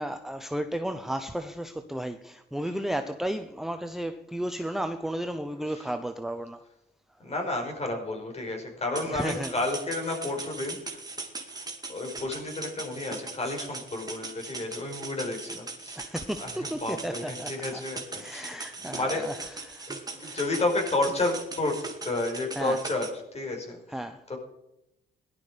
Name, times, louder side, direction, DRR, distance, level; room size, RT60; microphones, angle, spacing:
voice 1, 0.0-6.6 9.1-9.5 16.0-17.8 18.2-19.4 19.6-20.4 22.6-22.8 23.9-24.2, right 1 dB, ahead, 0.8 m, -33 dB
voice 2, 5.5-5.9 7.2-11.0 11.5-18.5 18.8-19.3 20.1-24.4, left 2 dB, 30° left, 5.3 m, -31 dB
sound 1, 9.0-23.1, right 3 dB, 20° right, 2.5 m, -40 dB
17.5 x 12.0 x 5.1 m
cardioid pair, 90°, 20 cm